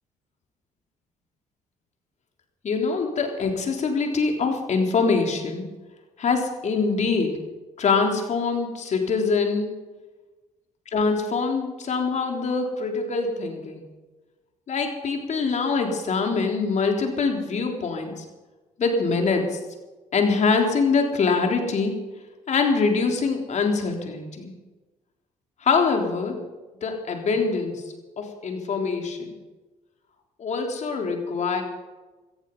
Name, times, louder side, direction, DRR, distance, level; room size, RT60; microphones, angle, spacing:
voice 1, 2.6-5.7 6.2-7.4 7.8-9.7 10.9-13.8 14.7-18.2 18.8-19.6 20.1-21.9 22.5-24.5 25.6-26.4 26.8-29.4 30.4-31.6, left 4 dB, 55° left, 3 dB, 3.8 m, -24 dB
18.0 x 14.0 x 5.6 m, 1.2 s
cardioid pair, 75°, 14 cm